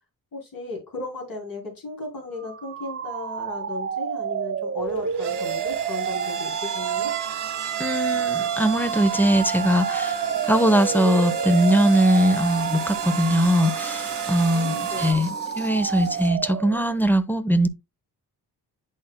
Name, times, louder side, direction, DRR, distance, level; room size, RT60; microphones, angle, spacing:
voice 1, 0.3-7.1 14.5-15.2, left 2 dB, 55° left, 3.2 m, -35 dB
sound 1, 2.3-17.0, right 7 dB, 35° right, 0.5 m, -31 dB
sound 2, 4.8-15.1, right 8 dB, 90° right, 1.5 m, -29 dB
voice 2, 7.8-15.3 15.5-17.7, equal, 5° left, 0.9 m, -21 dB
sound 3, 10.3-16.3, left 1 dB, 25° left, 1.8 m, -43 dB
11.0 x 4.1 x 2.2 m
cardioid pair, 80°, 40 cm